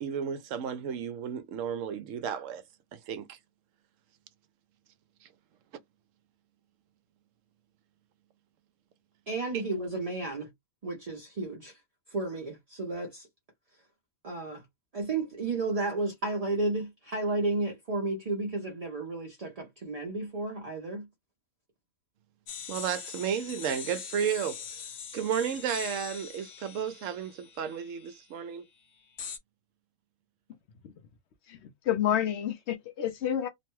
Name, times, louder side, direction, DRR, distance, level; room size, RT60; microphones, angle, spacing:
voice 1, 0.0-2.6 2.9-3.4 22.7-24.6 25.1-28.6, right 8 dB, 70° right, 0.9 m, -33 dB
voice 2, 9.3-10.5 10.8-11.8 12.1-13.3 14.2-14.6 14.9-21.1, right 2 dB, 40° right, 0.5 m, -32 dB
sound 1, 22.5-28.2 29.2-29.4, left 7 dB, 80° left, 1.2 m, -42 dB
voice 3, 31.5-33.5, left 10 dB, 60° left, 0.8 m, -29 dB
2.9 x 2.1 x 3.0 m
omnidirectional pair, 1.5 m